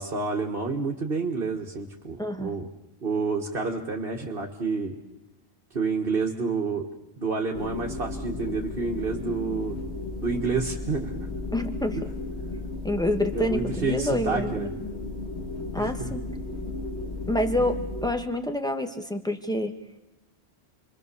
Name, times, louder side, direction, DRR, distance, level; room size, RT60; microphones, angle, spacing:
voice 1, 0.0-2.7 3.0-5.0 5.7-6.9 7.2-9.8 10.2-11.3 12.0-12.3 13.3-14.8 15.8-16.1, right 4 dB, 60° right, 0 dB, 1.9 m, -29 dB
voice 2, 2.2-2.5 11.5-12.1 12.8-14.7 15.7-16.2 17.3-19.7, left 1 dB, 5° left, 5 dB, 1.7 m, -27 dB
sound 1, 7.5-18.1, left 2 dB, 80° left, 2.7 m, -34 dB
29.0 x 23.0 x 6.9 m, 0.98 s
omnidirectional pair, 1.1 m